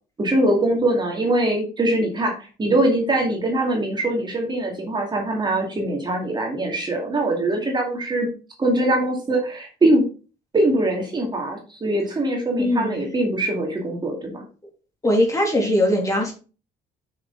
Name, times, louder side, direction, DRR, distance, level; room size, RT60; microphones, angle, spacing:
voice 1, 0.2-2.3 2.6-8.3 8.6-10.0 10.5-14.4, right 1 dB, 25° right, 1 dB, 2.1 m, -22 dB
voice 2, 12.6-13.1 15.0-16.3, left 1 dB, 20° left, 0 dB, 2.8 m, -20 dB
6.4 x 6.3 x 3.9 m, 0.35 s
cardioid pair, 110°, 17 cm